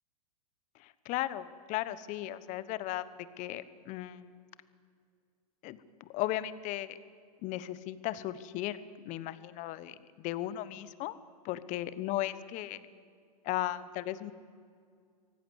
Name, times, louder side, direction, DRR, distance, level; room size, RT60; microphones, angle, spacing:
voice 1, 0.8-3.0 3.4-4.4 5.6-7.0 7.4-8.8 9.0-11.2 11.4-12.8 13.4-14.3, left 14 dB, 40° left, 15 dB, 1.2 m, -36 dB
25.0 x 18.0 x 8.2 m, 2.2 s
hypercardioid pair, 120°, 20 cm